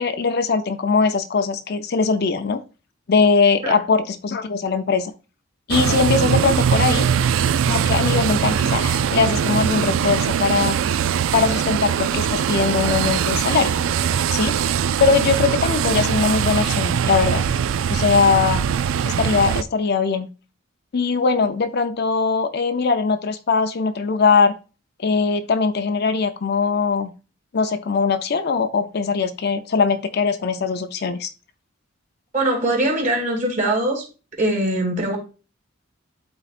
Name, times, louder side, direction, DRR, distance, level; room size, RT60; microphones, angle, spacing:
voice 1, 0.0-2.6 3.1-5.1 5.7-7.1 7.7-10.8 11.3-13.8 14.3-14.6 15.0-17.4 17.9-18.7 19.0-20.3 20.9-24.5 25.0-27.1 27.5-31.3, left 5 dB, 50° left, 9 dB, 0.5 m, -20 dB
sound 1, 5.7-19.6, right 8 dB, 70° right, 0.3 m, -21 dB
voice 2, 32.3-34.1 34.4-35.2, right 1 dB, 40° right, 0 dB, 2.5 m, -22 dB
11.5 x 4.0 x 2.4 m, 0.33 s
head